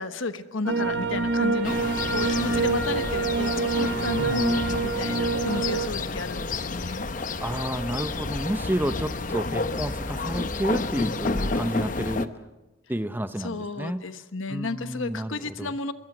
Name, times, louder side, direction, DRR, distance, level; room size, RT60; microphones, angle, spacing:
voice 1, 0.0-3.5 3.8-7.1 13.4-15.9, left 3 dB, 75° left, 10 dB, 1.2 m, -33 dB
sound 1, 0.7-5.9, right 3 dB, 55° right, 1.5 m, -26 dB
sound 2, 1.6-12.3, left 3 dB, 40° left, 0.8 m, -30 dB
voice 2, 4.2-4.6 7.4-12.3 12.9-14.0 14.5-15.7, right 1 dB, 10° right, 10 dB, 0.7 m, -30 dB
25.5 x 22.5 x 6.1 m, 1.1 s
head